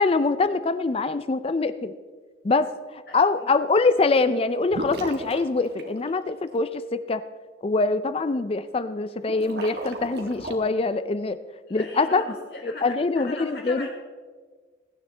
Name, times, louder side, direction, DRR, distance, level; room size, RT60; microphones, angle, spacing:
voice 1, 0.0-1.9 2.4-7.2 7.6-11.4 11.7-12.2 12.6-13.9, left 3 dB, 30° left, 12 dB, 0.4 m, -24 dB
voice 2, 3.1-3.5 11.7-12.9 13.2-13.9, left 2 dB, 60° left, -1 dB, 3.7 m, -39 dB
sound 1, 4.7-6.5 9.2-10.6, right 1 dB, 60° right, 1.5 m, -35 dB
21.5 x 10.0 x 3.3 m, 1.5 s
head